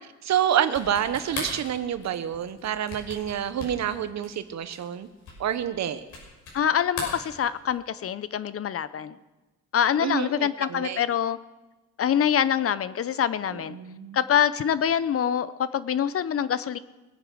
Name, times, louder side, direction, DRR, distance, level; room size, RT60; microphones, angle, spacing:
voice 1, 0.2-5.1 5.4-6.0 10.0-11.0 13.5-14.2, right 9 dB, 65° right, 12 dB, 1.1 m, -28 dB
sound 1, 0.6-6.6 6.9-7.9, left 3 dB, 80° left, 6.0 m, -39 dB
voice 2, 6.5-9.1 9.7-11.4 12.0-13.8 14.1-16.8, left 9 dB, 50° left, 15 dB, 0.7 m, -25 dB
21.0 x 9.0 x 6.4 m, 1.2 s
cardioid pair, 90°, 30 cm